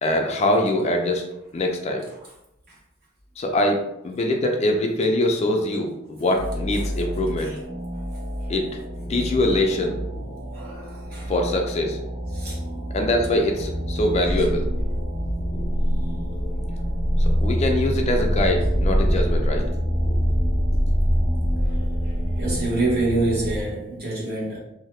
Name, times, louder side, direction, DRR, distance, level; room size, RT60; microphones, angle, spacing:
voice 1, 0.0-1.3 1.5-2.0 3.4-7.6 8.5-8.7 9.1-10.0 11.3-12.0 12.9-14.7 15.6-15.7 17.4-19.7 20.0-20.2, left 1 dB, 35° left, 2 dB, 0.4 m, -23 dB
sound 1, 6.2-23.6, equal, 80° right, 0.9 m, -25 dB
voice 2, 10.5-11.3 12.3-12.6 14.2-14.4 22.4-24.6, right 2 dB, 50° right, -5 dB, 1.1 m, -26 dB
2.7 x 2.2 x 3.1 m, 0.84 s
head